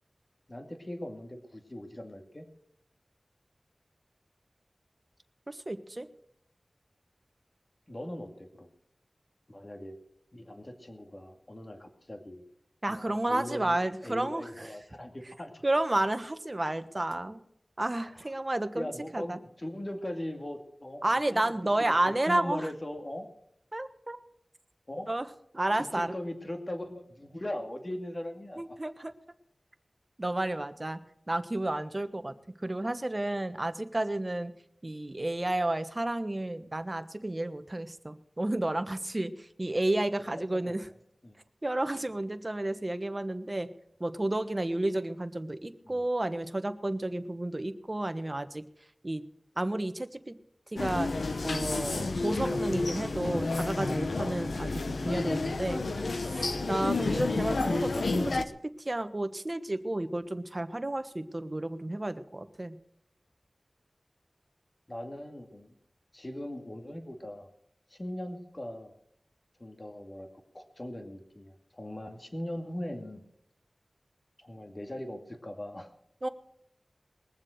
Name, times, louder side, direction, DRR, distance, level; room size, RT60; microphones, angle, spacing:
voice 1, 0.5-2.5 7.9-8.7 9.5-10.0 10.3-12.4 12.9-13.8 14.0-15.6 18.2-18.3 18.7-21.0 21.8-23.3 24.9-25.1 25.7-28.8 40.3-40.7 41.2-41.4 45.8-46.0 64.9-65.8 66.1-67.5 67.9-68.9 69.6-70.3 70.5-73.2 74.4-75.9, left 1 dB, 35° left, 4 dB, 2.3 m, -40 dB
voice 2, 5.5-6.1 12.8-14.8 15.6-17.4 17.8-18.9 19.1-19.4 21.0-22.7 23.7-24.2 25.1-25.3 25.5-26.1 28.6-29.1 30.2-31.0 31.3-34.5 34.8-40.9 41.6-43.7 44.0-48.6 49.0-49.2 49.6-50.4 50.7-51.1 51.4-55.8 56.2-62.7 76.2-76.3, right 1 dB, 35° right, 10 dB, 1.2 m, -31 dB
sound 1, 50.8-58.4, left 3 dB, 85° left, 0.9 m, -30 dB
21.5 x 7.4 x 6.5 m, 0.73 s
wide cardioid pair, 50°, 0 cm